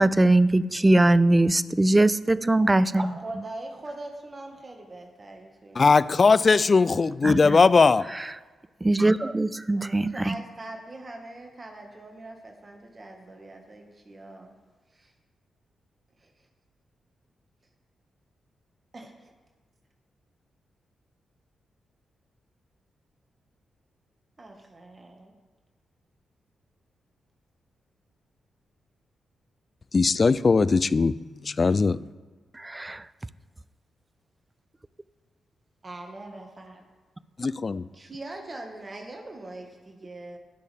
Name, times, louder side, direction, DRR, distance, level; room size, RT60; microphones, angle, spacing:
voice 1, 0.0-3.1 7.2-7.6 8.8-10.3 32.5-33.0, right 2 dB, 20° right, 0.5 m, -21 dB
voice 2, 2.9-6.0 9.8-14.5 14.9-15.1 16.2-16.5 18.9-19.3 24.4-25.3 35.8-36.8 37.9-40.4, right 2 dB, 40° right, 1.7 m, -42 dB
voice 3, 5.8-8.1 29.9-31.2 31.4-32.0 37.4-37.8, left 4 dB, 45° left, 0.4 m, -19 dB
19.0 x 6.4 x 3.6 m
hypercardioid pair, 40°, 0 cm